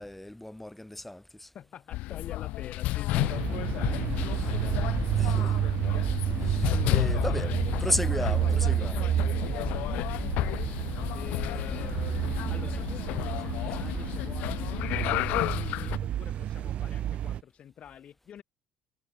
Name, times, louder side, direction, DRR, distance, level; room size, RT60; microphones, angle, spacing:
voice 1, 0.0-1.5 5.2-5.5 6.5-6.6 6.9-7.5 7.8-9.0, left 1 dB, 5° left, 3.4 m, -34 dB
voice 2, 1.5-3.5 6.6-7.5 7.9-10.7 11.1-12.1 12.5-18.4, left 9 dB, 50° left, 6.7 m, -46 dB
sound 1, 1.9-16.0, left 18 dB, 80° left, 3.5 m, -31 dB
sound 2, 3.1-17.4, right 11 dB, 60° right, 1.1 m, -30 dB
cardioid pair, 100°, 2 cm